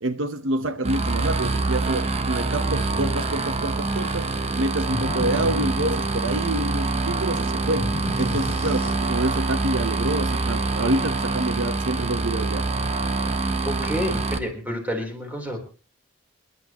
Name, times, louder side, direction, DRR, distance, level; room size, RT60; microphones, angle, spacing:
voice 1, 0.0-7.9 8.2-12.7, right 2 dB, 75° right, 1.0 m, -27 dB
sound 1, 0.8-14.4, right 3 dB, 30° right, 1.1 m, -25 dB
sound 2, 4.9-6.6 7.8-9.4, left 2 dB, 50° left, 0.9 m, -34 dB
voice 2, 13.6-15.6, equal, 10° right, 3.8 m, -29 dB
29.5 x 11.0 x 3.0 m
head